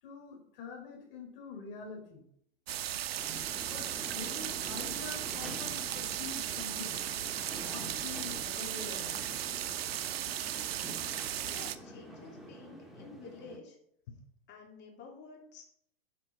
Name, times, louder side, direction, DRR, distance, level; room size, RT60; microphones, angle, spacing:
voice 1, 0.0-2.2 3.7-7.0 7.5-9.3, left 4 dB, 55° left, 2 dB, 3.7 m, -46 dB
sound 1, 2.7-11.8, right 11 dB, 70° right, 0.7 m, -36 dB
sound 2, 3.1-13.6, equal, ahead, 1.8 m, -48 dB
voice 2, 11.4-13.8 14.5-15.6, left 4 dB, 35° left, 1 dB, 3.0 m, -50 dB
10.0 x 5.9 x 5.2 m, 0.70 s
hypercardioid pair, 115°, 32 cm